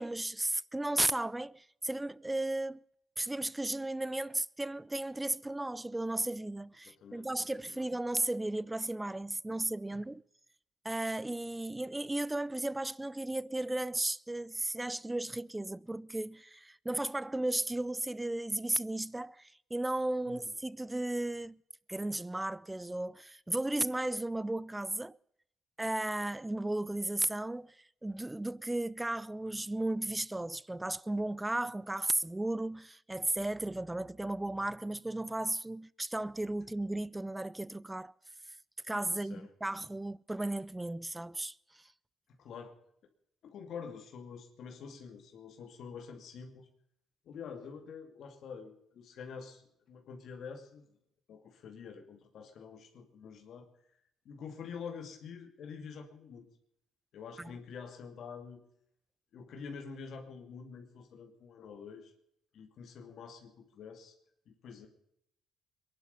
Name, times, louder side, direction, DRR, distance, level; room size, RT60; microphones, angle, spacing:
voice 1, 0.0-2.8 3.2-10.2 10.8-21.6 21.9-25.1 25.8-38.1 38.9-41.8 57.4-57.5, right 1 dB, 10° right, 0.5 m, -35 dB
voice 2, 7.0-7.8 9.5-9.6 9.9-10.0 20.2-20.5 39.1-39.5 42.3-42.8 43.4-46.7 47.2-51.0 51.3-53.7 54.2-56.5 57.1-58.6 59.3-62.1 62.5-64.1 64.5-64.9, left 6 dB, 70° left, 2.5 m, -47 dB
22.5 x 11.5 x 5.4 m
cardioid pair, 90°, 0 cm